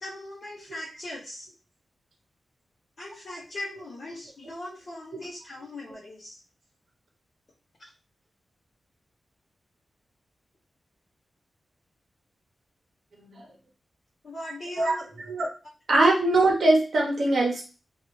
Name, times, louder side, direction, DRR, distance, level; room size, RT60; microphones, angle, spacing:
voice 1, 0.0-1.5 3.0-6.4 7.8-7.9 14.2-15.1, left 1 dB, 50° left, -7 dB, 0.8 m, -39 dB
voice 2, 15.9-17.7, right 2 dB, 55° right, -1 dB, 0.8 m, -21 dB
3.5 x 2.4 x 3.0 m, 0.34 s
wide cardioid pair, 175°, 0 cm